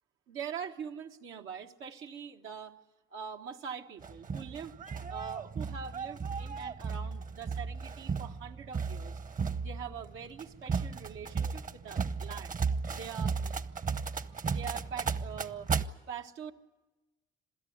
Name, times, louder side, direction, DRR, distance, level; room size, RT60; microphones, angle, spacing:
voice 1, 0.3-2.7 3.1-4.7 5.1-9.2 9.6-12.5 12.9-13.6 14.4-15.7 16.1-16.5, right 7 dB, 90° right, 3 dB, 1.5 m, -43 dB
sound 1, 4.0-15.8, right 5 dB, 40° right, 0.9 m, -35 dB
27.0 x 16.0 x 9.4 m, 1.1 s
cardioid pair, 90°, 20 cm